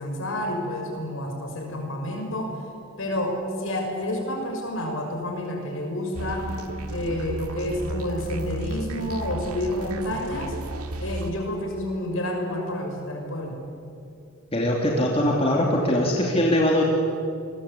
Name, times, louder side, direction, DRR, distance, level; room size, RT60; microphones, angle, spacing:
voice 1, 0.0-2.6 3.0-6.5 6.9-10.6 11.0-13.6, left 1 dB, 65° left, 2 dB, 6.1 m, -29 dB
sound 1, 6.1-11.3, right 1 dB, 85° right, 2.1 m, -33 dB
voice 2, 14.5-16.8, left 1 dB, 25° left, -2 dB, 2.9 m, -21 dB
29.5 x 21.5 x 8.5 m, 2.6 s
head